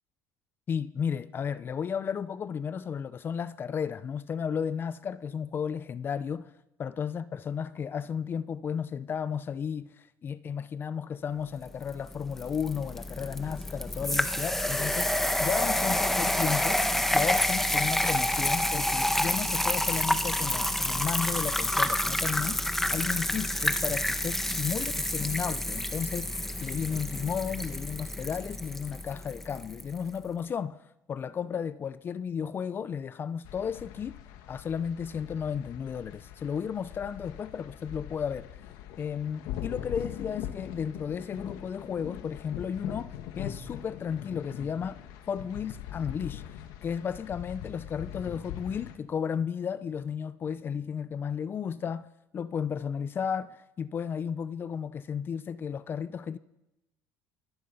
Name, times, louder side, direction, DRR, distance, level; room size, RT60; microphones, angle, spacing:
voice 1, 0.7-6.5 6.8-22.6 22.9-30.8 31.1-34.2 34.5-38.6 39.0-46.4 46.8-56.4, left 7 dB, 30° left, 0.7 m, -34 dB
sound 1, 11.9-29.9, left 1 dB, 5° left, 1.3 m, -29 dB
sound 2, 33.4-49.0, left 11 dB, 70° left, 1.9 m, -41 dB
26.5 x 20.5 x 5.6 m
cardioid pair, 120°, 7 cm